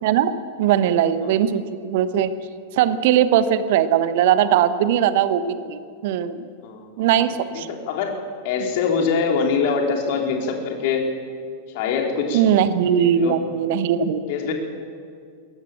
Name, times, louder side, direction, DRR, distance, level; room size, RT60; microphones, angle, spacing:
voice 1, 0.0-0.3 0.6-2.3 2.7-6.4 7.0-7.7 8.6-8.7 12.3-14.2, right 9 dB, 50° right, 13 dB, 1.1 m, -20 dB
voice 2, 6.6-7.1 7.5-8.1 8.4-11.0 11.7-12.4 13.0-13.4 14.3-14.5, left 5 dB, 50° left, 2 dB, 3.7 m, -23 dB
22.0 x 18.0 x 7.7 m, 2.1 s
figure-of-eight pair, 90°, 0 cm